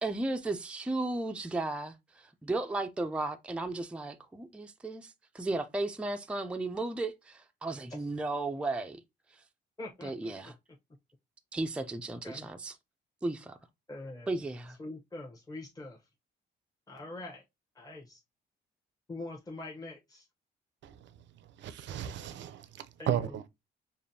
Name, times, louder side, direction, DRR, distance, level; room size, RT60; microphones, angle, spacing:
voice 1, 0.0-9.0 9.3-9.4 10.0-10.5 11.5-12.7 13.2-13.6 14.3-14.8, right 2 dB, 5° right, 0.4 m, -35 dB
voice 2, 9.8-10.5 12.2-12.5 13.9-14.4 14.8-16.1 16.9-17.4 17.7-18.2 19.1-20.3 23.0-23.3, left 2 dB, 20° left, 0.8 m, -43 dB
voice 3, 20.8-21.1 21.4-23.5, right 10 dB, 65° right, 0.5 m, -35 dB
5.0 x 2.6 x 2.7 m
cardioid pair, 90°, 20 cm